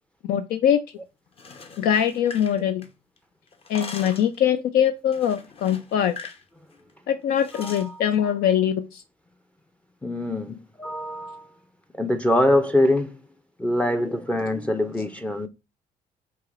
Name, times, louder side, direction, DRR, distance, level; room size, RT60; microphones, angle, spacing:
voice 1, 0.2-0.8 1.8-2.9 3.7-6.2 7.1-9.0, left 9 dB, 85° left, 0.5 m, -22 dB
sound 1, 1.3-3.2 3.5-4.4 5.1-6.4 6.7-6.9 7.4-7.9, left 4 dB, 40° left, 0.8 m, -42 dB
voice 2, 7.5-8.0 10.0-11.5 11.9-13.2 13.6-15.5, left 1 dB, 10° left, 0.4 m, -24 dB
4.7 x 2.9 x 2.4 m
cardioid pair, 105°, 15 cm